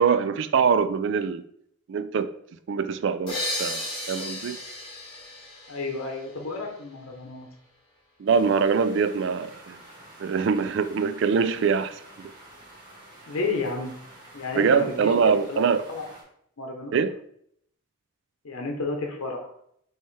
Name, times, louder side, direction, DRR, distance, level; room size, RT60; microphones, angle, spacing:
voice 1, 0.0-1.4 1.9-2.3 2.7-4.6 8.2-9.8 10.2-12.3 14.5-15.8 16.9-17.1, right 6 dB, 60° right, 11 dB, 0.3 m, -23 dB
sound 1, 3.3-6.8, left 1 dB, 20° left, 1.5 m, -34 dB
voice 2, 5.7-7.5 13.3-13.9 14.3-15.1 15.5-15.6 15.9-16.0 16.6-16.9 18.4-19.5, left 3 dB, 85° left, 2 dB, 0.8 m, -31 dB
sound 2, 8.3-16.2, right 1 dB, 20° right, 1.5 m, -48 dB
5.3 x 3.1 x 3.2 m, 0.70 s
head